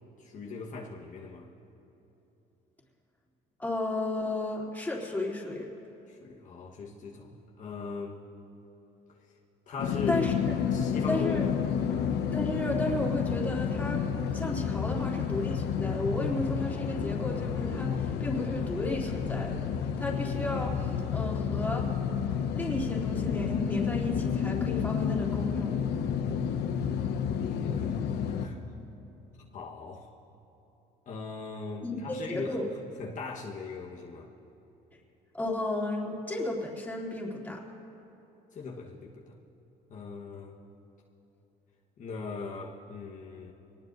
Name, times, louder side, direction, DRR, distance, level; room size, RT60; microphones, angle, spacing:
voice 1, 0.2-1.5 6.1-8.2 9.2-9.4 9.7-10.3 10.7-11.6 11.9-12.2 27.3-28.6 29.5-30.1 31.1-34.3 38.5-39.4 39.9-40.6 42.0-43.5, left 4 dB, 50° left, -3 dB, 1.3 m, -39 dB
voice 2, 3.6-5.7 10.1-10.3 11.1-11.5 12.3-19.7 20.0-21.9 22.5-25.7 31.8-32.7 35.3-37.6, left 1 dB, 10° left, -4 dB, 3.0 m, -33 dB
sound 1, 9.8-28.5, left 7 dB, 85° left, 1.0 m, -30 dB
24.5 x 19.0 x 2.6 m, 3.0 s
cardioid pair, 110°, 17 cm